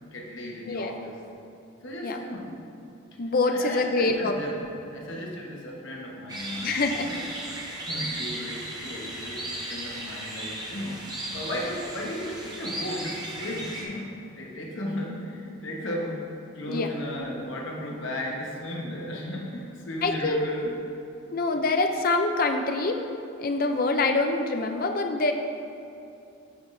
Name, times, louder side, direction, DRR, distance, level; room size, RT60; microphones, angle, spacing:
voice 1, 0.0-1.2 1.8-2.4 3.5-6.7 7.0-7.2 7.9-11.0 11.3-16.2 16.5-20.8, left 1 dB, 60° left, -2 dB, 1.2 m, -35 dB
voice 2, 3.2-4.3 6.6-7.1 16.7-16.9 20.0-20.5 21.3-23.0 23.4-25.3, left 3 dB, 40° left, 5 dB, 0.5 m, -25 dB
sound 1, 6.3-13.8, right 1 dB, 20° right, 0.9 m, -36 dB
11.5 x 6.0 x 2.6 m, 2.6 s
head